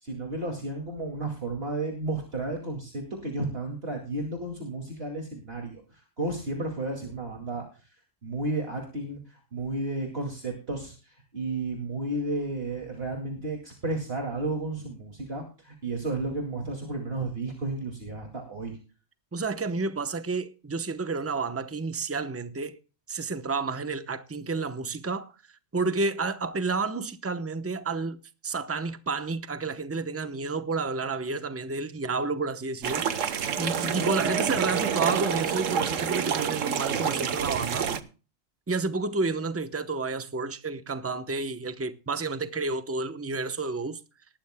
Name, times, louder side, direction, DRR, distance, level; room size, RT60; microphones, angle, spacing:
voice 1, 0.0-7.9 8.2-18.8, right 2 dB, 50° right, 2.6 m, -33 dB
voice 2, 19.3-22.8 23.1-25.3 25.7-37.9 38.7-44.0, right 3 dB, 15° right, 0.7 m, -30 dB
sound 1, 32.8-38.0, right 7 dB, 80° right, 1.3 m, -28 dB
19.0 x 13.0 x 2.2 m
omnidirectional pair, 1.3 m